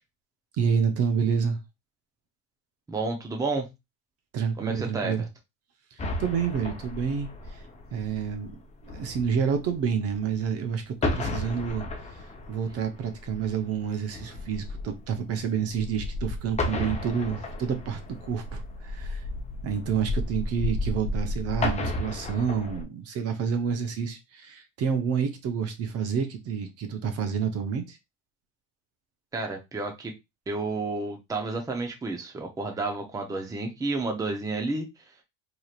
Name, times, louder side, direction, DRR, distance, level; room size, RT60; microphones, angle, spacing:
voice 1, 0.6-1.6 4.3-5.3 6.2-7.6 7.9-8.5 8.8-11.9 12.5-19.2 19.6-28.0, right 7 dB, 50° right, 0.9 m, -28 dB
voice 2, 2.9-3.7 4.6-5.2 29.3-30.1 30.5-34.9, right 3 dB, 10° right, 0.7 m, -31 dB
sound 1, 6.0-10.6 10.9-22.8, left 2 dB, 20° left, 0.8 m, -33 dB
4.7 x 3.0 x 2.4 m
cardioid pair, 130°, 31 cm